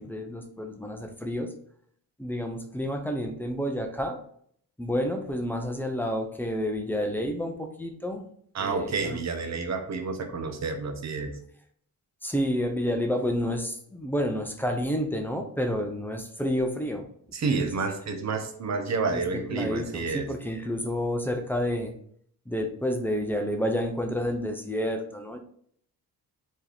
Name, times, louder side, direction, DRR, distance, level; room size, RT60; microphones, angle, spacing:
voice 1, 0.0-1.5 2.2-4.2 4.8-8.2 8.6-9.2 12.2-17.1 17.6-17.7 19.1-19.2 19.5-21.9 22.5-25.4, equal, 5° left, 4 dB, 0.6 m, -29 dB
voice 2, 8.5-11.4 17.3-20.3, right 4 dB, 45° right, 5 dB, 0.8 m, -29 dB
4.5 x 3.0 x 3.4 m, 0.63 s
cardioid pair, 120°, 38 cm